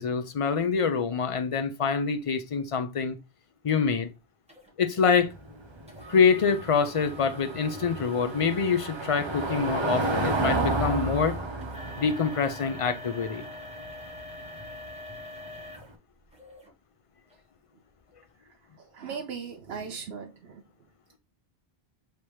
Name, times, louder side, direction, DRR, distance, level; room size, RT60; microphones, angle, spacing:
voice 1, 0.0-3.2 3.6-4.1 4.8-5.3 6.1-11.3 12.0-13.4, left 6 dB, 40° left, 0.5 m, -25 dB
sound 1, 3.7-3.8 4.5-4.7 5.9-16.7 17.3-17.4 18.0-18.1, equal, 5° right, 1.2 m, -46 dB
Car passing by / Engine, 5.1-15.8, right 2 dB, 30° right, 0.7 m, -32 dB
voice 2, 18.8-20.6, right 6 dB, 80° right, 0.9 m, -38 dB
3.3 x 2.9 x 4.5 m
omnidirectional pair, 1.1 m